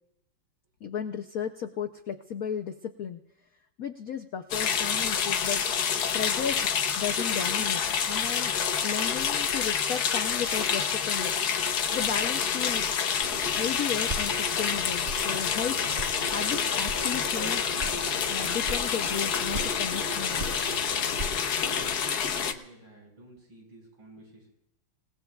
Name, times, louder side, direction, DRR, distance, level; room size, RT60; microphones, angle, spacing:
voice 1, 0.8-3.2 3.8-5.6 6.1-6.6 7.0-8.5 8.8-11.3 11.9-12.9 13.5-15.8 16.2-17.7 18.3-20.4, left 8 dB, 75° left, 7 dB, 0.8 m, -34 dB
sound 1, 4.5-22.5, left 7 dB, 55° left, 1.2 m, -28 dB
sound 2, 13.2-22.0, right 2 dB, 30° right, 0.9 m, -40 dB
voice 2, 21.7-24.5, right 1 dB, 65° right, -1 dB, 6.2 m, -52 dB
28.0 x 18.5 x 2.3 m, 0.87 s
omnidirectional pair, 2.4 m